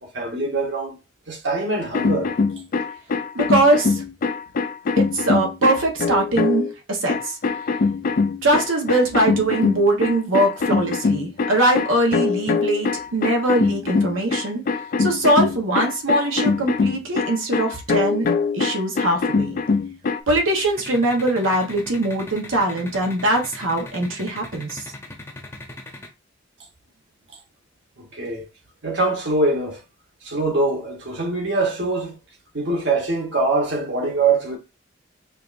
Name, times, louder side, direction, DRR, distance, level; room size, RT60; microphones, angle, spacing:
voice 1, 0.0-1.0 1.3-2.3 28.0-28.4 28.8-29.8 30.2-32.2 32.5-34.6, right 3 dB, 60° right, 1.2 m, -23 dB
sound 1, 1.8-6.7 7.1-20.2, left 4 dB, 45° left, 0.3 m, -23 dB
voice 2, 3.3-4.0 4.9-7.4 8.4-14.6 15.0-18.3 18.5-19.6 20.3-24.9, right 1 dB, 85° right, 1.0 m, -21 dB
sound 2, 20.8-26.1, left 2 dB, 15° left, 0.7 m, -38 dB
5.1 x 2.5 x 2.5 m
head